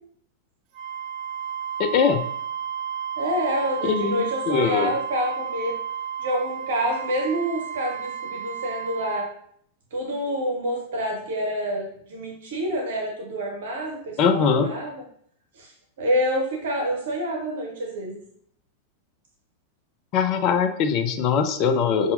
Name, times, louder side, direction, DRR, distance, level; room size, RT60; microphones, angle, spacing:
Wind instrument woodwind instrument, 0.7-9.3, right 8 dB, 45° right, 0.5 m, -32 dB
voice 1, 1.8-2.2 3.8-4.9 14.2-14.7 20.1-22.1, left 6 dB, 40° left, 7 dB, 0.4 m, -22 dB
voice 2, 3.2-5.7 6.2-9.3 9.9-14.9 15.6-15.7 16.0-18.2, equal, 60° right, 1 dB, 0.9 m, -27 dB
5.4 x 2.7 x 2.5 m, 0.65 s
figure-of-eight pair, 90°, 0 cm